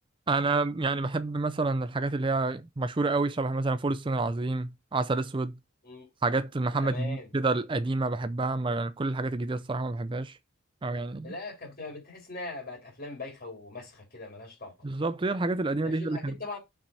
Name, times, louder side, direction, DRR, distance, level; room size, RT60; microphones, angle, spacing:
voice 1, 0.3-5.5 6.2-10.3 10.8-11.3 14.8-16.3, right 3 dB, 25° right, 0.4 m, -28 dB
voice 2, 6.8-7.3 11.2-14.9 15.8-16.6, left 3 dB, 45° left, 4.0 m, -41 dB
6.8 x 6.1 x 4.6 m
head